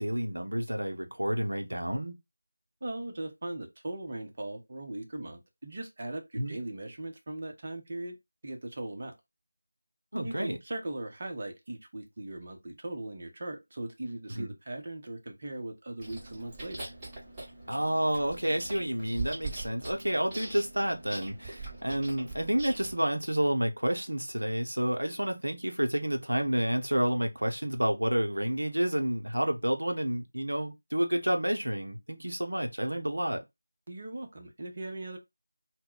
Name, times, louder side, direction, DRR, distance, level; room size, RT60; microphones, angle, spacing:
voice 1, 0.0-2.2 6.4-6.6 10.1-10.6 14.4-14.5 17.7-33.4, right 1 dB, 80° right, 0.7 m, -30 dB
voice 2, 2.8-8.2 8.4-9.1 10.2-16.9 33.9-35.2, right 1 dB, 40° right, 0.7 m, -39 dB
Chewing mastication, 16.0-22.9, right 2 dB, 15° right, 1.0 m, -42 dB
2.2 x 2.1 x 3.8 m
figure-of-eight pair, 170°, 0 cm